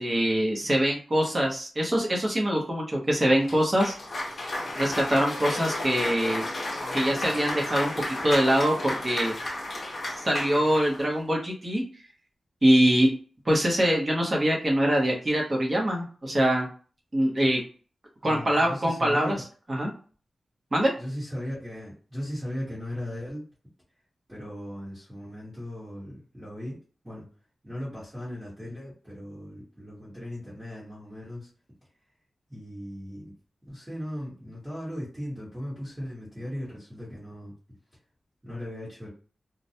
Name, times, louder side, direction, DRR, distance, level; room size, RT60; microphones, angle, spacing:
voice 1, 0.0-3.9 4.7-6.4 6.9-7.9 8.2-9.3 10.0-11.8 12.6-13.1 13.5-16.7 17.1-17.6 18.2-19.3 19.7-19.9 20.7-20.9, equal, 25° right, -1 dB, 0.7 m, -24 dB
Cheering / Applause, 3.4-11.1, left 1 dB, 45° left, 0.8 m, -33 dB
voice 2, 18.2-19.3 21.0-23.4 24.3-26.8 27.0-27.3 27.6-31.5 32.5-33.3 33.7-37.5 38.4-39.1, equal, 10° right, -10 dB, 1.1 m, -37 dB
2.2 x 2.0 x 2.7 m, 0.39 s
wide cardioid pair, 165°, 0 cm